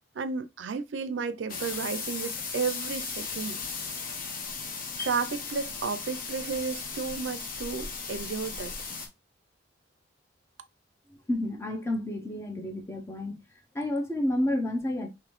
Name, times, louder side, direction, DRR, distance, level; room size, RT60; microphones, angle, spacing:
voice 1, 0.2-3.6 5.0-8.7, right 5 dB, 75° right, 0.5 m, -33 dB
sound 1, 1.5-9.1, left 5 dB, 50° left, 0.9 m, -36 dB
voice 2, 11.3-13.4 13.7-15.1, left 1 dB, 15° left, 0.6 m, -30 dB
3.9 x 3.0 x 3.0 m
head